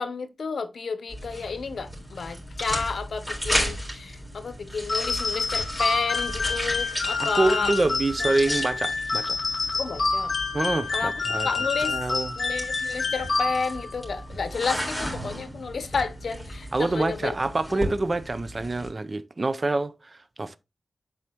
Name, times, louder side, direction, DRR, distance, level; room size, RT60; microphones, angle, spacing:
voice 1, 0.0-7.7 8.2-8.6 9.8-10.3 10.9-11.1 11.4-12.0 12.4-17.3 17.7-17.8, left 5 dB, 85° left, 0.7 m, -31 dB
sound 1, 1.1-18.9, equal, ahead, 3.7 m, -35 dB
sound 2, 4.9-13.9, left 4 dB, 55° left, 1.5 m, -28 dB
voice 2, 7.2-9.4 10.5-11.5 11.8-12.4 16.7-20.6, right 2 dB, 40° right, 0.6 m, -26 dB
7.7 x 4.8 x 2.9 m
wide cardioid pair, 85°, 0 cm